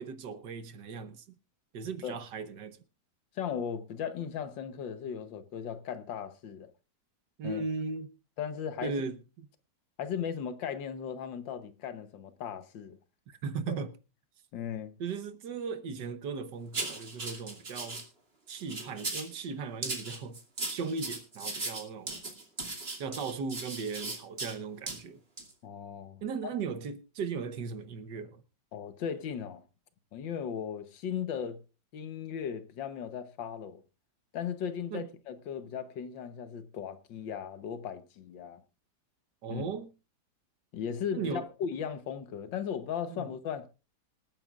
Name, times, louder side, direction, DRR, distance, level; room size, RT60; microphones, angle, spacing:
voice 1, 0.0-1.3 1.7-2.8 7.4-8.1 8.8-9.5 13.3-13.9 15.0-18.1 18.5-22.2 23.0-25.2 26.2-28.4 34.9-35.1 39.4-39.9 41.1-41.5 43.1-43.3, right 5 dB, 65° right, 1.6 m, -37 dB
voice 2, 3.3-6.7 7.4-7.6 8.4-8.9 10.0-13.0 13.7-13.8 14.5-14.9 25.6-26.2 28.7-29.6 30.1-31.6 31.9-33.8 34.3-38.6 39.5-39.6 40.7-43.7, left 8 dB, 75° left, 1.7 m, -37 dB
sound 1, 16.7-18.0 18.5-19.3 19.8-24.5 24.9-25.0 25.4-25.5, right 3 dB, 30° right, 2.5 m, -37 dB
26.0 x 9.0 x 2.4 m
omnidirectional pair, 2.1 m